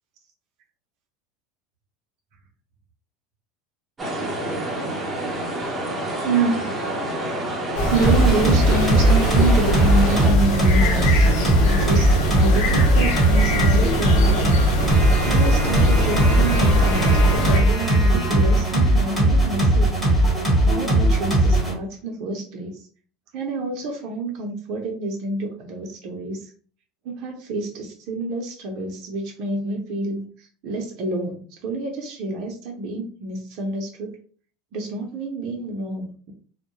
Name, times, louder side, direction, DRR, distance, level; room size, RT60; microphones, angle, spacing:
sound 1, 4.0-10.3, right 1 dB, 15° right, 0.7 m, -28 dB
voice 1, 6.2-6.8 7.9-14.6 15.2-19.9 20.6-22.8 23.3-26.5 27.0-34.2 34.7-36.3, right 2 dB, 60° right, 2 dB, 0.6 m, -28 dB
sound 2, 7.8-17.6, equal, 65° left, 0.9 m, -23 dB
sound 3, 8.0-21.7, right 1 dB, 5° left, 1.2 m, -19 dB
2.2 x 2.1 x 2.9 m, 0.42 s
supercardioid pair, 120°, 0 cm